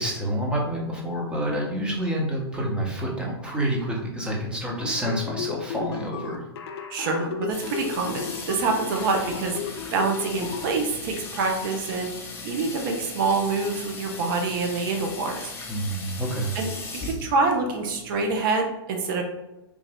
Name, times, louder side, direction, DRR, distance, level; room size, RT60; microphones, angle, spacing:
voice 1, 0.0-6.4 15.7-16.5, right 1 dB, 5° right, -2 dB, 1.0 m, -28 dB
sound 1, 4.8-10.6, left 7 dB, 65° left, 0.6 m, -34 dB
voice 2, 6.9-9.6 9.9-12.1 12.4-15.5 16.5-16.7 17.0-19.2, right 4 dB, 55° right, 3 dB, 0.8 m, -26 dB
Water tap faucet / Sink (filling or washing), 7.5-18.4, left 3 dB, 15° left, 0.8 m, -38 dB
3.5 x 2.5 x 3.5 m, 0.96 s
hypercardioid pair, 120°, 14 cm